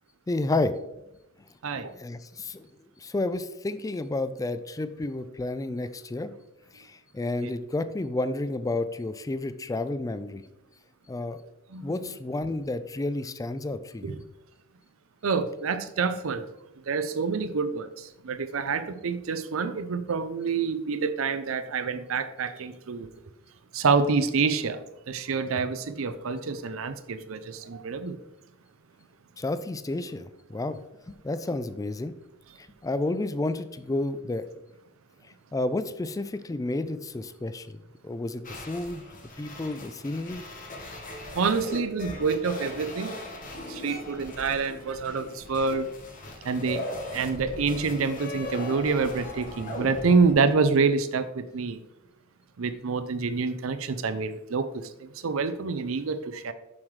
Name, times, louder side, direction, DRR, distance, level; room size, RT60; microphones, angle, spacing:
voice 1, 0.3-0.7 1.9-2.7 3.0-6.3 6.7-10.4 11.1-11.4 11.8-14.2 29.4-30.8 31.1-32.1 32.8-34.5 35.5-39.0 39.4-40.4, left 2 dB, 15° left, 12 dB, 0.3 m, -31 dB
voice 2, 11.7-12.0 14.0-14.1 15.2-16.4 16.9-23.1 23.7-28.2 41.3-43.1 43.7-45.9 46.4-46.8 47.1-51.8 52.6-56.5, right 4 dB, 70° right, 11 dB, 0.5 m, -27 dB
sound 1, 38.4-50.3, left 1 dB, 40° left, 1.2 m, -39 dB
7.2 x 6.3 x 3.2 m, 0.91 s
head